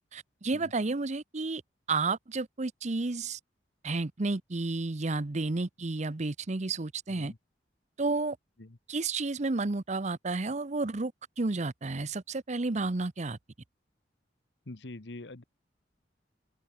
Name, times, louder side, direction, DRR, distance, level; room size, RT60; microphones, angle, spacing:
voice 1, 0.0-1.6 1.9-3.4 3.8-7.3 8.0-8.4 8.9-11.1 11.4-13.4, right 3 dB, 40° right, 0.8 m, -31 dB
voice 2, 14.7-15.4, left 2 dB, 70° left, 1.3 m, -44 dB
open air
head